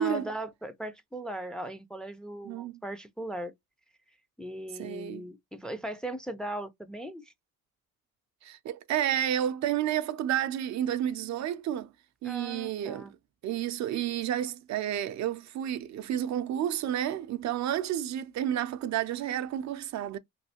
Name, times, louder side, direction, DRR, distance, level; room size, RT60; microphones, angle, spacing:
voice 1, 0.0-3.5 4.4-7.3 12.2-13.1, right 1 dB, 5° left, 0.4 m, -38 dB
voice 2, 2.4-2.8 4.8-5.3 8.4-11.9 12.2-13.2 13.4-20.2, right 11 dB, 65° right, 0.5 m, -31 dB
3.2 x 2.6 x 2.8 m
cardioid pair, 90°, 30 cm